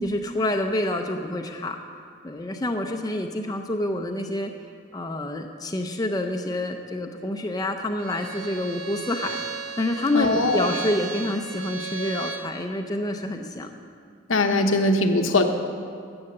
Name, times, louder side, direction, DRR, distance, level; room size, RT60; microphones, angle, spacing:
voice 1, 0.0-1.8 2.2-4.5 4.9-9.4 9.8-13.7, left 1 dB, 20° left, 4 dB, 0.5 m, -27 dB
Bowed string instrument, 8.0-12.5, right 5 dB, 80° right, 1.2 m, -35 dB
voice 2, 10.1-10.7 14.3-15.4, left 2 dB, 85° left, 5 dB, 1.0 m, -21 dB
11.0 x 7.9 x 6.6 m, 2.2 s
head